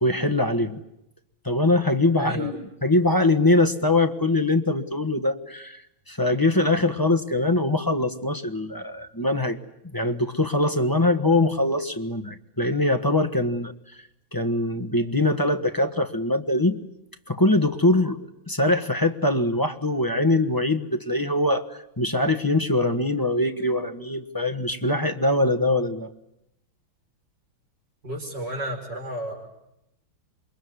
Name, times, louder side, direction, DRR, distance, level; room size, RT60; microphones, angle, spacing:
voice 1, 0.0-0.8 1.4-5.8 6.1-9.6 9.9-13.7 14.3-16.8 17.3-26.1, left 2 dB, 15° left, 6 dB, 1.0 m, -23 dB
voice 2, 2.2-2.5 28.0-29.5, right 1 dB, 60° right, 1 dB, 6.0 m, -32 dB
28.0 x 22.5 x 9.5 m, 0.84 s
omnidirectional pair, 2.2 m